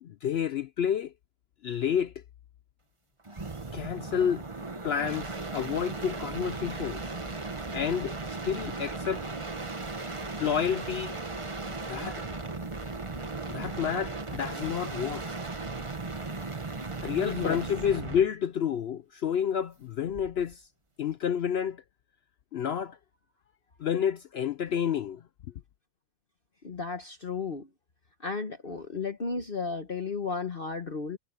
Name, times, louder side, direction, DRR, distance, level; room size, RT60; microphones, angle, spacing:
voice 1, 0.0-1.1 1.6-2.1 3.7-4.4 4.8-7.0 7.7-9.2 10.4-11.1 11.9-12.2 13.5-15.4 17.0-20.6 21.0-21.8 22.5-23.0 23.8-25.2, left 8 dB, 65° left, 0.6 m, -30 dB
sound 1, 3.2-18.3 20.1-20.5, right 3 dB, 20° right, 1.2 m, -36 dB
voice 2, 17.3-17.7 26.6-27.7 28.2-31.2, left 4 dB, 40° left, 1.2 m, -33 dB
omnidirectional pair, 1.6 m